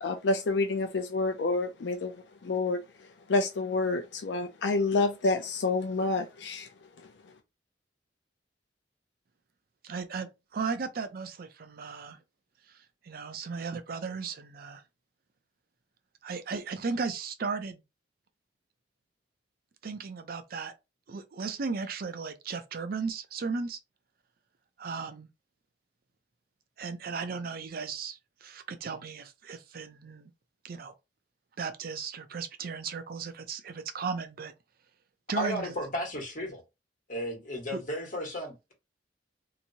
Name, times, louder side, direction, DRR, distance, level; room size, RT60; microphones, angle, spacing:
voice 1, 0.0-2.1 2.4-6.7 7.0-7.1, left 3 dB, 80° left, 0.5 m, -28 dB
voice 2, 9.8-12.2 13.0-14.8 16.2-17.8 19.8-20.7 21.1-23.8 24.8-25.3 26.8-30.3 30.6-30.9 31.6-34.5 35.3-35.7 37.7-37.8, right 5 dB, 55° right, 0.5 m, -36 dB
voice 3, 35.3-36.6 37.1-38.7, equal, 50° left, 1.5 m, -34 dB
2.9 x 2.6 x 2.8 m
head